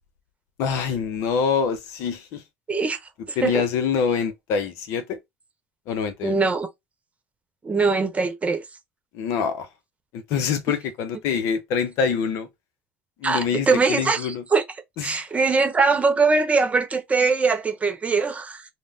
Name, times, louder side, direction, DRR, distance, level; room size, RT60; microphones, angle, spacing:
voice 1, 0.6-2.4 3.4-5.2 5.9-6.3 9.1-9.7 10.1-12.5 13.2-14.4 15.0-15.2, left 6 dB, 70° left, 0.6 m, -25 dB
voice 2, 2.7-3.0 3.3-3.6 6.2-6.7 7.6-8.6 13.2-14.6 15.0-18.6, right 4 dB, 25° right, 0.9 m, -22 dB
2.5 x 2.1 x 3.5 m
hypercardioid pair, 75°, 5 cm